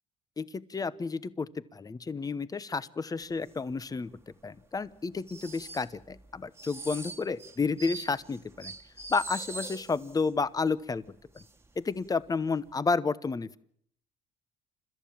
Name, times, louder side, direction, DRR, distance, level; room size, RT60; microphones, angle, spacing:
voice 1, 0.4-4.1 4.4-8.7 9.1-11.0 11.3-11.4 11.8-13.6, left 4 dB, 20° left, 17 dB, 1.0 m, -31 dB
sound 1, 3.5-3.7 4.0-4.1 4.6-10.3 10.7-10.8 11.1-11.7 11.9-12.2 12.7-12.8, right 3 dB, 15° right, 1.7 m, -43 dB
29.5 x 14.0 x 7.3 m, 0.66 s
cardioid pair, 110°, 17 cm